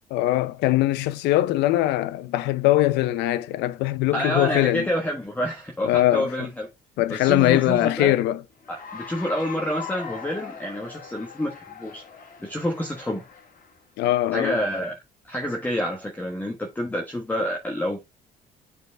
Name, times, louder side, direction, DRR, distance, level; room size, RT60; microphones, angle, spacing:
voice 1, 0.1-4.9 5.8-6.5 7.0-8.4 14.0-14.6, left 15 dB, 90° left, 0.6 m, -21 dB
voice 2, 4.1-6.7 7.1-8.1 8.7-12.0 12.4-13.2 14.3-14.9 15.3-18.0, equal, 10° left, 1.4 m, -28 dB
Cheering / Applause, 8.6-13.8, left 6 dB, 55° left, 2.0 m, -40 dB
8.2 x 4.7 x 3.3 m
cardioid pair, 110°, 17 cm